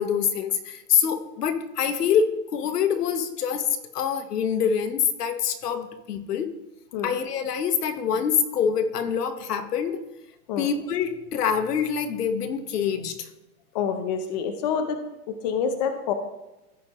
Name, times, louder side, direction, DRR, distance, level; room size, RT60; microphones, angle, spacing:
voice 1, 0.0-3.7 3.9-6.5 7.0-10.0 10.6-13.3, left 7 dB, 80° left, 9 dB, 1.2 m, -25 dB
voice 2, 13.7-15.0 15.3-16.1, left 7 dB, 30° left, 7 dB, 0.6 m, -27 dB
15.0 x 5.0 x 3.0 m, 0.97 s
hypercardioid pair, 155°, 47 cm